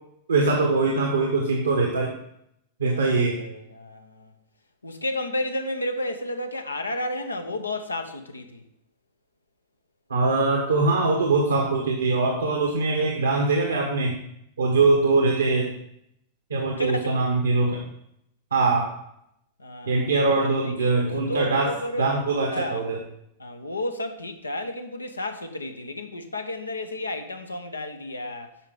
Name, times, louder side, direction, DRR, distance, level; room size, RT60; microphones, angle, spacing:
voice 1, 0.3-2.1 2.8-3.4 10.1-14.2 14.6-15.7 16.5-17.8 18.5-18.9 19.8-21.7 22.0-23.0, right 3 dB, 75° right, 0 dB, 1.4 m, -22 dB
voice 2, 2.9-4.3 4.8-8.6 16.8-17.2 19.6-20.4 20.6-22.8 23.4-28.5, left 1 dB, 80° left, 6 dB, 0.9 m, -32 dB
8.8 x 5.9 x 5.2 m, 0.76 s
figure-of-eight pair, 90°, 0 cm